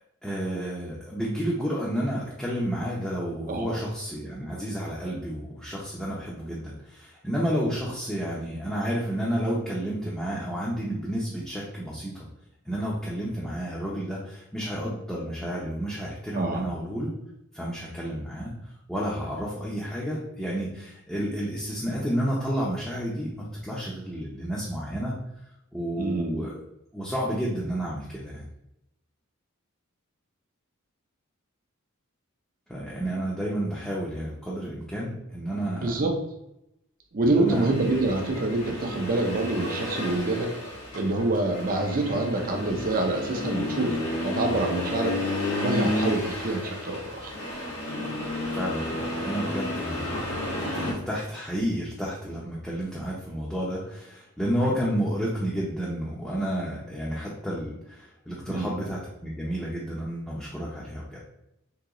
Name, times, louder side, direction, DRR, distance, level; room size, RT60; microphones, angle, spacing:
voice 1, 0.2-12.2 12.6-17.1 17.5-25.1 25.7-26.6 26.9-28.5 32.7-36.0 37.2-37.7 48.5-61.2, equal, ahead, -7 dB, 0.6 m, -31 dB
voice 2, 3.5-3.8 16.3-16.7 26.0-26.4 35.7-36.1 37.1-40.5 40.9-45.2 45.6-47.3 48.0-48.2 58.5-58.8, right 2 dB, 40° right, 2 dB, 0.6 m, -26 dB
Accelerating revving vroom, 37.5-50.9, left 1 dB, 80° left, 1.0 m, -32 dB
3.7 x 2.8 x 2.9 m, 0.84 s
head